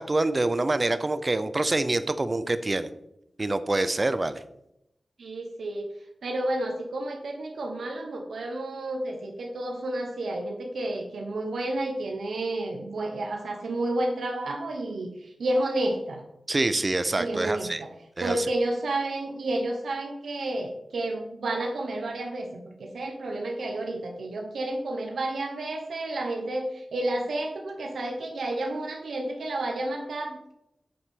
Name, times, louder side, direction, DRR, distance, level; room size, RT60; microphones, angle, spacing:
voice 1, 0.0-2.9 3.4-4.4 16.5-17.8 18.2-18.5, right 2 dB, 30° right, 12 dB, 0.6 m, -26 dB
voice 2, 5.2-5.9 6.2-16.2 17.2-17.9 18.2-30.5, right 1 dB, 90° right, 2 dB, 1.2 m, -31 dB
9.3 x 6.9 x 3.7 m, 0.82 s
wide cardioid pair, 95°, 0 cm